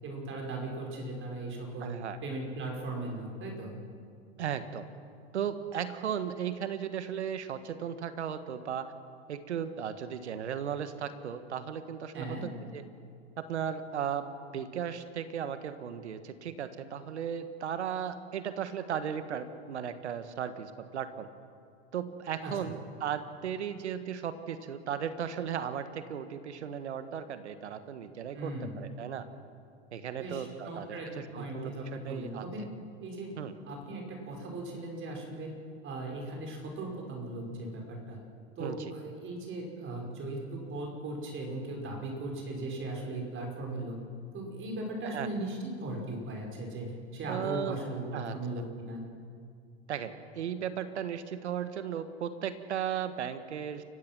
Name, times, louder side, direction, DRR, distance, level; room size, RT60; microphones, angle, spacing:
voice 1, 0.0-2.0 2.2-3.8 12.1-12.5 22.4-22.7 28.3-28.7 30.2-32.6 33.0-33.3 33.7-35.5 35.8-38.2 38.6-44.0 44.3-49.0, right 2 dB, 35° right, 0 dB, 5.4 m, -38 dB
voice 2, 1.8-2.2 4.4-4.9 5.3-8.9 9.3-12.8 13.4-21.3 21.9-29.3 29.9-31.0 31.3-32.4 33.4-33.5 38.6-38.9 45.0-45.3 47.3-47.8 48.1-48.4 49.9-53.8, right 8 dB, 85° right, 11 dB, 1.5 m, -36 dB
29.5 x 16.0 x 6.1 m, 2.3 s
hypercardioid pair, 95°, 33 cm